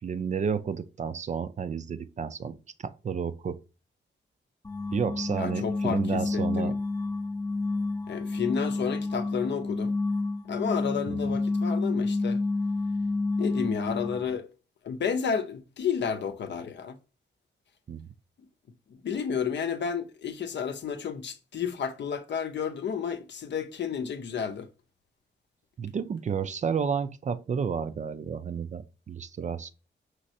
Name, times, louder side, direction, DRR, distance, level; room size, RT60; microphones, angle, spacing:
voice 1, 0.0-3.6 4.9-6.8 11.1-11.3 17.9-18.1 25.8-29.7, right 6 dB, 40° right, 0.4 m, -31 dB
sound 1, 4.6-14.4, left 3 dB, 20° left, 0.6 m, -29 dB
voice 2, 5.4-6.7 8.1-9.9 10.5-12.4 13.4-14.5 14.8-16.9 19.0-24.7, left 7 dB, 65° left, 0.6 m, -31 dB
5.2 x 3.1 x 2.7 m
cardioid pair, 80°, 20 cm